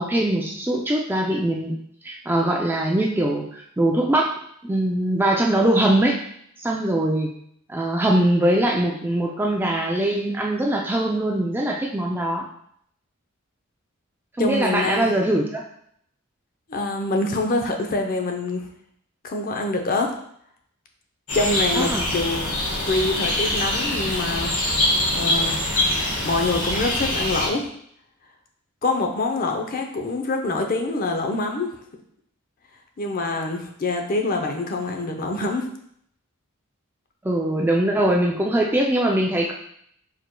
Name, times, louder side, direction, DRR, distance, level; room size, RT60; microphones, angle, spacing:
voice 1, 0.0-1.8 2.0-4.3 4.6-6.2 6.6-7.3 7.7-12.4 14.4-15.6 21.8-22.1 37.2-39.5, right 1 dB, 10° right, 0 dB, 0.4 m, -22 dB
voice 2, 14.4-15.2 16.7-18.6 19.2-20.1 21.3-22.5 22.9-24.8 25.1-25.6 26.2-27.7 28.8-31.7 33.0-35.7, left 2 dB, 40° left, 3 dB, 0.6 m, -25 dB
sound 1, 21.3-27.5, left 1 dB, 80° left, 1.3 m, -24 dB
4.8 x 4.5 x 2.2 m, 0.67 s
head